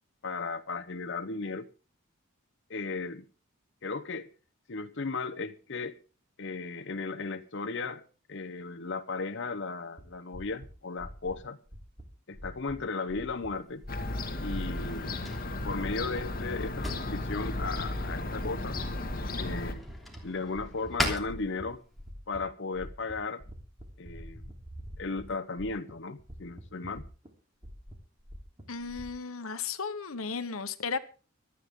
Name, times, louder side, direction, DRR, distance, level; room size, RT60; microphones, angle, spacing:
voice 1, 0.2-1.7 2.7-3.3 3.8-4.3 4.7-6.0 6.4-8.0 8.3-11.6 12.3-13.8 14.4-15.2 15.6-18.8 19.4-19.8 20.2-21.8 22.3-23.4 24.0-24.4 25.0-27.0, left 4 dB, 60° left, 0.9 m, -35 dB
sound 1, 10.0-10.1 10.3-10.7 11.0-11.3 11.7-12.0 12.3-12.7 13.1-13.5 13.8-14.2 14.5-14.9 15.1-15.5 15.8-16.8 17.1-17.5 17.8-18.1 18.4-18.8 19.1-20.2 20.5-20.9 21.2-21.6 22.0-22.4 22.7-23.1 23.4-25.2 25.5-25.9 26.2-27.3 27.6-29.1, equal, 25° right, 3.3 m, -45 dB
Drawer open or close, 13.4-22.1, left 1 dB, ahead, 3.1 m, -40 dB
Fowl / Gull seagull, 13.9-19.7, left 2 dB, 45° left, 2.0 m, -34 dB
voice 2, 28.7-31.0, left 5 dB, 85° left, 1.1 m, -35 dB
25.5 x 9.8 x 3.7 m
head